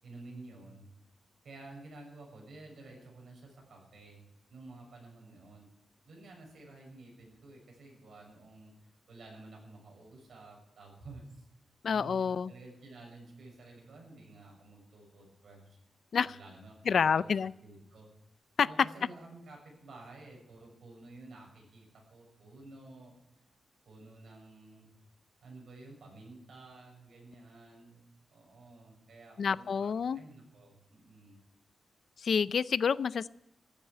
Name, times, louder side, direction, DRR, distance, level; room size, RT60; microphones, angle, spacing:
voice 1, 0.0-0.9 1.4-5.7 6.0-11.5 11.9-15.8 16.2-18.1 18.6-23.1 23.8-24.9 25.4-28.0 28.3-31.4, right 2 dB, 65° right, 0 dB, 6.8 m, -52 dB
voice 2, 11.8-12.5 16.1-16.4 16.9-17.5 18.6-18.7 29.4-30.2 32.2-33.3, left 6 dB, 55° left, 18 dB, 0.5 m, -28 dB
15.5 x 8.3 x 9.9 m, 0.85 s
wide cardioid pair, 165°, 0 cm